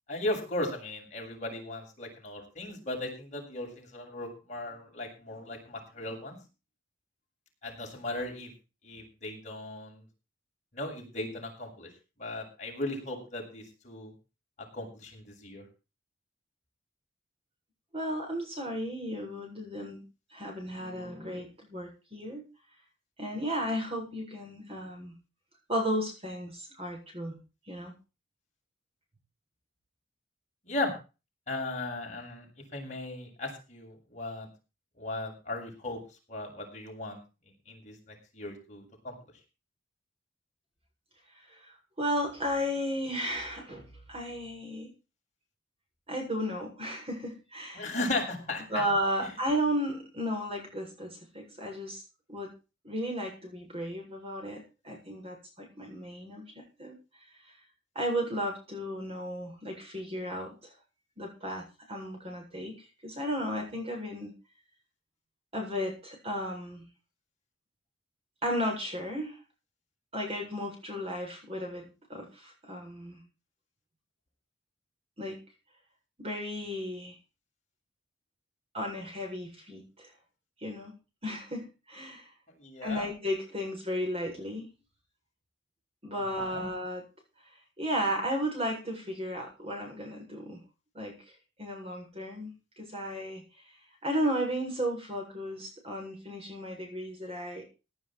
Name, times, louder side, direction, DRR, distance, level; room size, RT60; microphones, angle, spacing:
voice 1, 0.1-6.4 7.6-8.5 8.8-10.0 10.7-11.9 12.2-14.1 14.7-15.6 30.6-30.9 31.5-34.5 35.0-36.0 36.3-37.2 37.7-39.2 47.7-48.8 49.2-49.3 82.6-83.1 86.4-86.6, left 2 dB, 40° left, 0 dB, 7.5 m, -37 dB
voice 2, 17.9-20.0 20.3-22.4 23.2-25.2 25.7-27.4 27.7-27.9 41.5-44.9 46.1-47.9 48.7-52.0 52.3-52.5 52.8-56.4 56.8-57.0 57.9-60.5 61.2-64.3 65.5-66.9 68.4-69.4 70.1-73.2 75.2-75.4 76.2-77.1 78.7-80.1 80.6-80.9 81.2-82.2 82.8-84.7 86.0-87.0 87.8-90.6 90.9-91.2 91.6-93.4 94.0-97.6, equal, 30° right, 2 dB, 7.9 m, -34 dB
17.5 x 10.5 x 4.7 m, 0.32 s
head